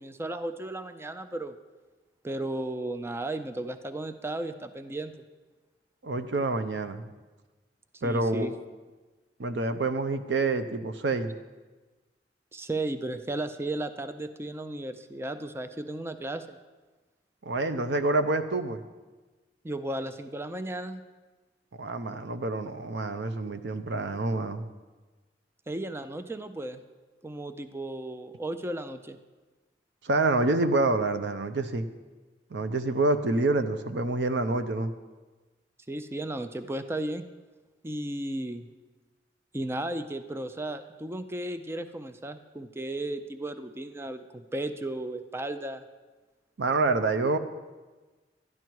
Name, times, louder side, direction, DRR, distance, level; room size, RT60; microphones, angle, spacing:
voice 1, 0.0-1.6 2.2-5.1 8.0-8.6 12.5-16.6 19.6-21.0 25.7-26.8 27.2-29.2 35.9-37.2 37.8-38.7 39.5-45.8, right 1 dB, 15° right, 10 dB, 0.4 m, -34 dB
voice 2, 6.0-7.1 8.0-8.5 9.4-11.4 17.4-18.8 21.7-24.6 30.0-31.9 32.5-34.9 46.6-47.4, right 2 dB, 85° right, 9 dB, 0.7 m, -27 dB
12.0 x 10.5 x 4.6 m, 1.3 s
head